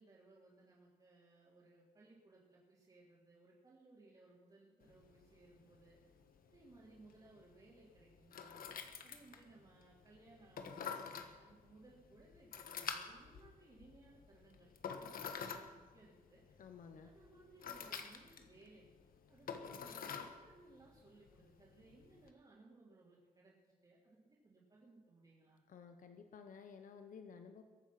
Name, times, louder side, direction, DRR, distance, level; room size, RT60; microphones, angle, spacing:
voice 1, 0.0-6.0 6.5-8.7 9.0-16.4 17.0-18.9 19.3-25.6, right 2 dB, 30° right, -7 dB, 3.4 m, -63 dB
sound 1, 4.8-22.3, left 6 dB, 85° left, 1.3 m, -50 dB
voice 2, 16.6-17.1 25.7-27.6, left 6 dB, 65° left, 7 dB, 1.1 m, -54 dB
22.0 x 8.9 x 6.0 m, 1.3 s
wide cardioid pair, 170°, 15 cm